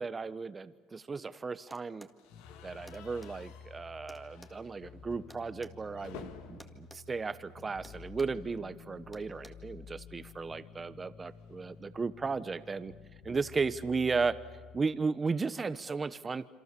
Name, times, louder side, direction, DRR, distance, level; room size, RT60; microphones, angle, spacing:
voice 1, 0.0-2.1 2.6-12.9 13.2-14.4 14.7-16.5, right 4 dB, 25° right, 14 dB, 1.0 m, -35 dB
sound 1, 1.7-2.2 2.9-3.3 4.1-5.8 6.6-7.0 7.3-7.5 7.8-8.4 9.1-9.5, equal, 5° left, 2.0 m, -54 dB
sound 2, 2.2-8.2 8.5-8.7 9.0-9.1 10.3-12.7, left 9 dB, 85° left, 1.7 m, -55 dB
sound 3, 2.3-14.8, left 5 dB, 60° left, 1.9 m, -52 dB
27.5 x 26.0 x 6.9 m, 1.4 s
supercardioid pair, 100°, 0 cm